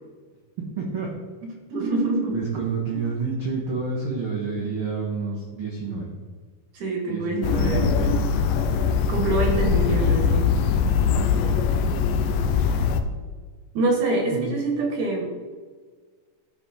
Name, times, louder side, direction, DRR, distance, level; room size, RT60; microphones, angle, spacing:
voice 1, 0.8-1.1 2.3-6.1 7.1-8.1 14.3-14.5, right 4 dB, 80° right, -3 dB, 1.2 m, -29 dB
voice 2, 1.4-2.4 6.7-7.9 9.1-10.5 12.7-12.8 13.7-15.3, right 3 dB, 60° right, 1 dB, 2.3 m, -25 dB
sound 1, 7.4-13.0, left 6 dB, 80° left, 2.2 m, -22 dB
14.0 x 4.9 x 4.1 m, 1.5 s
omnidirectional pair, 4.4 m